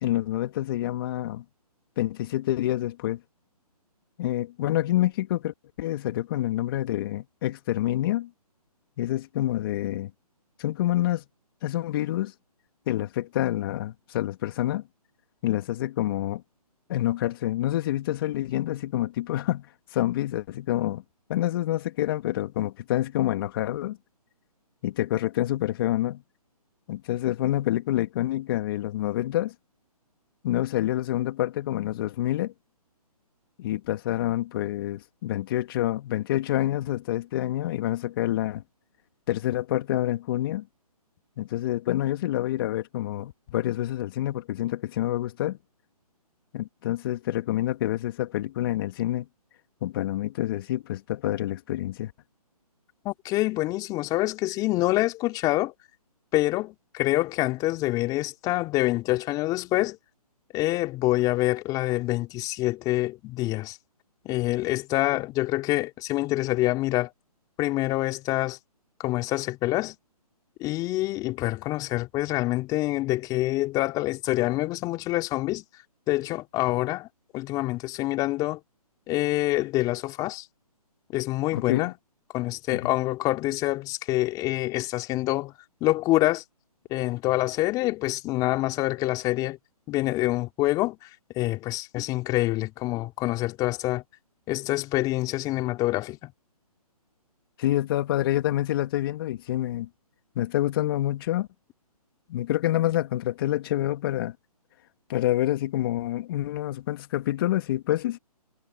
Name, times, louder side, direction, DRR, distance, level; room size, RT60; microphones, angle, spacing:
voice 1, 0.0-1.4 2.0-3.2 4.2-8.3 9.0-10.1 10.6-11.2 11.6-12.3 12.9-14.8 15.4-16.4 16.9-21.0 21.3-24.0 24.8-26.2 26.9-29.5 30.4-32.5 33.6-38.6 39.3-40.7 41.4-45.6 46.5-49.3 49.8-52.1 81.5-81.9 82.8-82.9 97.6-99.9 100.3-101.5 102.3-104.3 105.1-108.2, left 14 dB, 35° left, 2.8 m, -27 dB
voice 2, 53.0-55.7 56.3-60.0 60.5-63.8 64.2-67.1 67.6-68.6 69.0-69.9 70.6-75.6 76.1-77.1 77.3-78.6 79.1-80.4 81.1-81.9 82.3-85.5 85.8-86.4 86.9-89.6 89.9-91.1 91.3-94.0 94.5-96.3, left 18 dB, 20° left, 3.0 m, -26 dB
hypercardioid pair, 150°, 20 cm